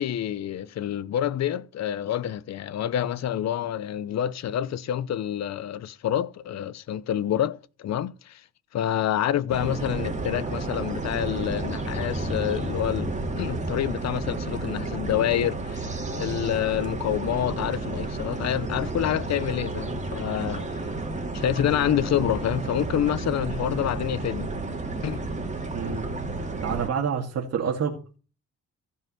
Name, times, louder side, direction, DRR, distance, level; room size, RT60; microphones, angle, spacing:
voice 1, 0.0-8.4 8.7-20.7 21.3-24.5 25.0-25.2, left 11 dB, 60° left, 0.9 m, -27 dB
sound 1, 9.5-26.9, right 2 dB, 25° right, 2.9 m, -31 dB
voice 2, 25.7-28.0, right 7 dB, 55° right, 2.3 m, -29 dB
15.5 x 5.6 x 5.8 m
cardioid pair, 90°, 30 cm